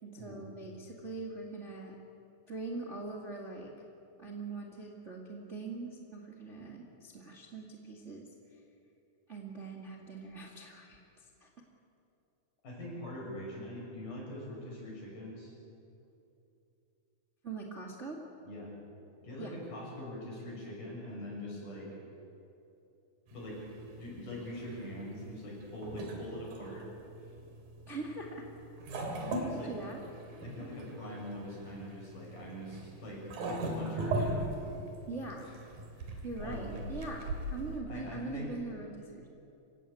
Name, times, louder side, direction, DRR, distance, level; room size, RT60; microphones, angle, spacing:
voice 1, 0.0-1.9 2.5-3.7 4.2-8.3 9.3-11.0 11.4-11.5 17.4-18.2 19.4-19.6 27.9-28.5 29.1-30.0 35.1-35.5 36.2-39.3, right 3 dB, 25° right, -1 dB, 1.7 m, -42 dB
voice 2, 12.6-15.5 18.4-18.7 19.2-21.9 23.3-23.6 24.0-26.9 29.2-29.8 30.4-34.5 35.4-35.5 36.0-36.8 37.9-38.5, left 1 dB, 60° left, -3 dB, 8.1 m, -43 dB
sound 1, 23.3-37.8, right 2 dB, 70° right, 4.3 m, -40 dB
27.5 x 16.5 x 8.5 m, 2.8 s
omnidirectional pair, 4.2 m